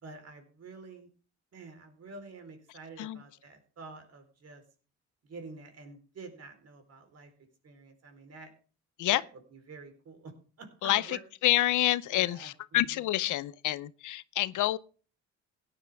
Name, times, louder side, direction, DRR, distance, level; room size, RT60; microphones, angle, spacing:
voice 1, 0.0-1.1 1.5-4.6 5.2-7.3 7.6-8.5 9.1-10.3 10.6-11.2 12.1-13.1, right 3 dB, 55° right, 3.9 m, -48 dB
voice 2, 10.8-11.2 11.4-14.8, left 16 dB, 80° left, 0.6 m, -28 dB
16.5 x 10.0 x 3.5 m
cardioid pair, 90°, 30 cm